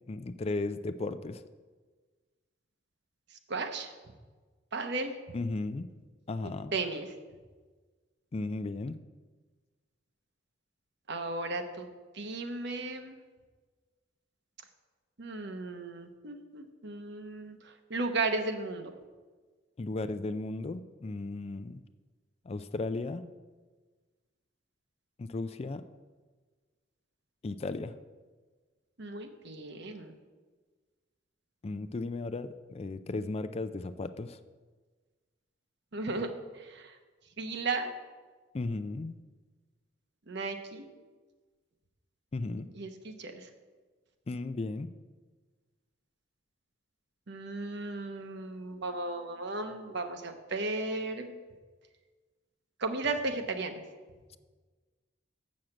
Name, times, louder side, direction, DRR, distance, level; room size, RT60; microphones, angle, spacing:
voice 1, 0.0-1.4 5.3-5.9 6.3-6.7 8.3-9.0 19.8-21.8 22.4-23.3 25.2-25.8 27.4-28.0 31.6-34.4 38.5-39.2 42.3-42.7 44.3-44.9, left 3 dB, 35° left, 12 dB, 0.4 m, -35 dB
voice 2, 3.5-3.9 4.7-5.1 6.7-7.1 11.1-11.9 12.1-13.1 15.2-18.9 29.0-30.2 35.9-37.0 37.4-37.9 40.3-40.9 42.7-43.5 47.3-51.3 52.8-53.8, right 3 dB, 65° right, 6 dB, 1.0 m, -35 dB
7.2 x 6.4 x 7.7 m, 1.4 s
head